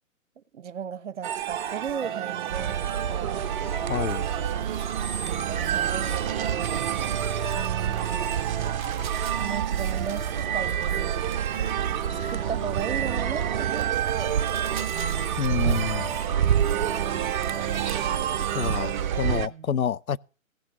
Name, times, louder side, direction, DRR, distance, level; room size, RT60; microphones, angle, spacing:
voice 1, 0.4-3.6 5.5-6.9 7.5-8.3 9.4-11.2 12.1-14.4 16.2-17.6 19.4-19.7, right 7 dB, 60° right, 1.1 m, -36 dB
sound 1, 1.2-19.5, right 9 dB, 35° right, 1.0 m, -30 dB
sound 2, 2.5-19.5, right 8 dB, 85° right, 0.6 m, -30 dB
voice 2, 3.9-4.3 15.4-16.1 18.5-20.2, left 7 dB, 90° left, 0.6 m, -28 dB
16.0 x 6.2 x 8.2 m
figure-of-eight pair, 135°, 41 cm